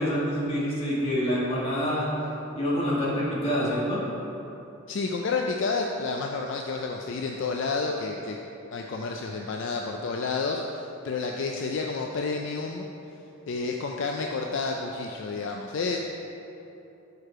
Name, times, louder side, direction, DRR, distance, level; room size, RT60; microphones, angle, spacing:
voice 1, 0.0-2.1 2.6-4.0, equal, 25° left, -7 dB, 1.4 m, -26 dB
voice 2, 4.9-8.4 8.7-12.9 13.5-16.0, left 4 dB, 55° left, 1 dB, 0.3 m, -30 dB
6.6 x 4.6 x 4.8 m, 3.0 s
head